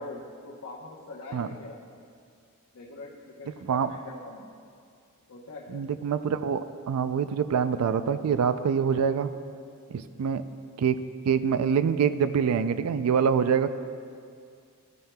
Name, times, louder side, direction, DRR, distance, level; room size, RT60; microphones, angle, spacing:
voice 1, 0.0-1.8 2.7-4.5 5.3-6.1, left 2 dB, 75° left, -4 dB, 0.9 m, -43 dB
voice 2, 5.7-9.3 9.9-10.4 10.8-11.0 11.3-13.7, right 7 dB, 85° right, 12 dB, 0.4 m, -25 dB
14.5 x 9.1 x 2.2 m, 2.3 s
head